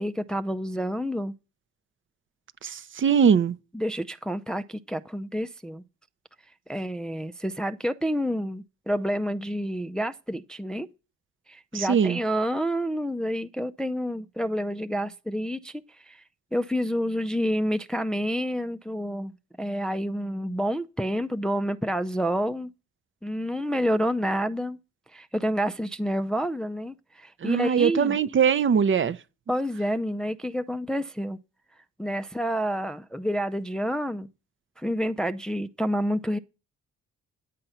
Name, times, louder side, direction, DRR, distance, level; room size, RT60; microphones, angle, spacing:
voice 1, 0.0-1.3 3.7-5.8 6.7-10.9 11.5-16.2 16.5-19.3 19.6-22.7 23.2-24.8 25.1-28.2 29.5-31.4 32.0-34.3 34.8-36.4, equal, ahead, 0.4 m, -28 dB
voice 2, 2.6-3.6 11.7-12.2 27.4-29.2, right 7 dB, 40° right, 0.6 m, -21 dB
9.8 x 7.7 x 5.6 m
cardioid pair, 90°, 30 cm